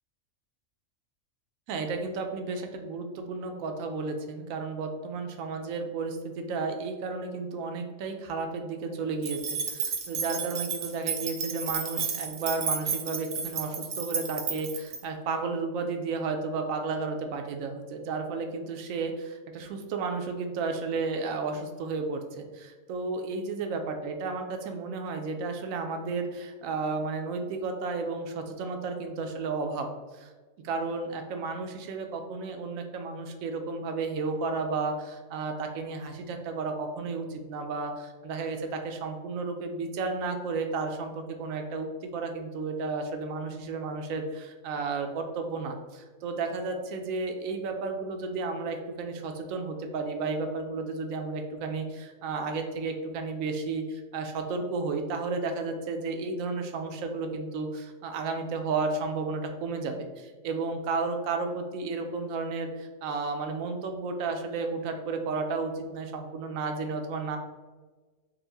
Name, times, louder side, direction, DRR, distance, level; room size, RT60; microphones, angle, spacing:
voice 1, 1.7-29.9 30.1-30.3 30.6-67.4, right 4 dB, 90° right, 5 dB, 1.0 m, -33 dB
sound 1, 9.2-15.0, right 6 dB, 60° right, 0.7 m, -32 dB
4.4 x 2.0 x 3.9 m, 1.3 s
omnidirectional pair, 1.4 m